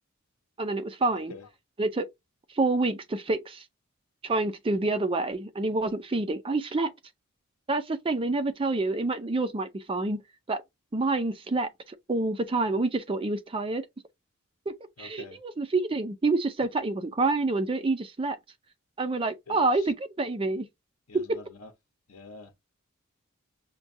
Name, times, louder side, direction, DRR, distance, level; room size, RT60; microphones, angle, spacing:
voice 1, 0.6-1.3 1.8-2.1 2.5-3.6 4.2-6.9 7.7-10.2 10.5-10.6 10.9-11.7 12.1-13.8 14.7-18.4 19.0-20.7 21.1-21.4, right 3 dB, 25° right, 0.4 m, -27 dB
voice 2, 15.0-15.4 19.5-19.8 21.1-21.7 22.1-22.7, left 3 dB, 80° left, 0.8 m, -46 dB
5.8 x 2.2 x 2.6 m
head